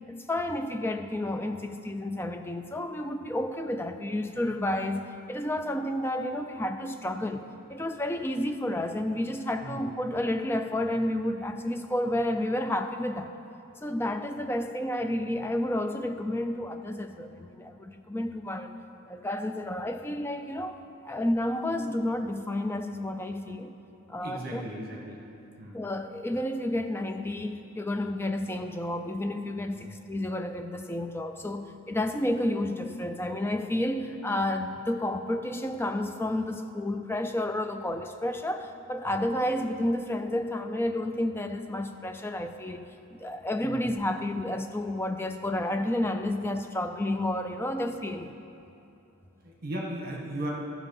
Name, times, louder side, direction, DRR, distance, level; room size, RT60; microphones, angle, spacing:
voice 1, 0.1-13.3 13.8-18.7 19.1-20.8 21.0-23.7 24.1-24.6 25.7-48.3, left 1 dB, 10° left, 7 dB, 0.3 m, -31 dB
voice 2, 24.2-25.2 25.6-25.8 29.7-29.9 39.1-39.2 43.6-43.8 47.8-47.9 49.4-50.5, right 1 dB, 45° right, -1 dB, 1.3 m, -37 dB
13.0 x 6.1 x 5.4 m, 2.7 s
head